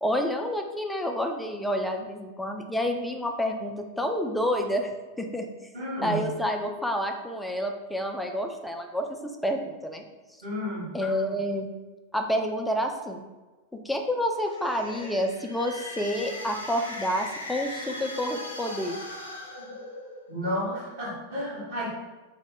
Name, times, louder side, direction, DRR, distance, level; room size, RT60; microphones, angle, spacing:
voice 1, 0.0-4.9 5.2-5.5 6.0-10.1 10.9-11.7 12.1-13.2 13.7-19.0, equal, 5° left, 3 dB, 0.3 m, -29 dB
voice 2, 5.7-6.2 10.4-10.8 19.6-19.7 20.3-21.9, equal, 55° right, -9 dB, 1.4 m, -32 dB
sound 1, 14.3-20.4, left 1 dB, 85° left, 0.5 m, -39 dB
2.9 x 2.0 x 3.5 m, 1.2 s
figure-of-eight pair, 90°, 0 cm